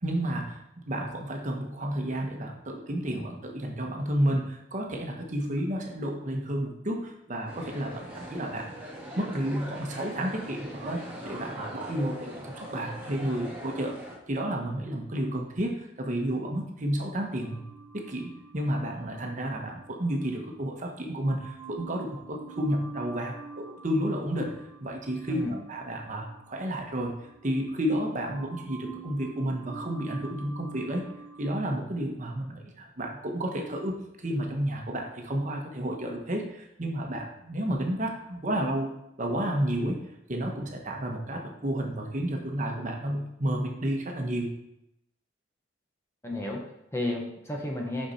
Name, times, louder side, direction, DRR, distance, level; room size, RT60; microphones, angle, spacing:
voice 1, 0.0-8.8 9.2-13.9 14.3-17.7 17.9-24.5 24.8-31.0 31.4-38.9 39.2-44.5, right 1 dB, 40° right, 2 dB, 1.0 m, -31 dB
sound 1, 7.5-14.2, equal, 10° right, 2.1 m, -41 dB
sound 2, 17.4-20.7 21.1-28.0 28.2-31.5, right 5 dB, 65° right, 0.8 m, -47 dB
voice 2, 46.2-48.1, left 1 dB, 15° left, 0 dB, 1.0 m, -32 dB
6.7 x 5.6 x 4.2 m, 0.83 s
head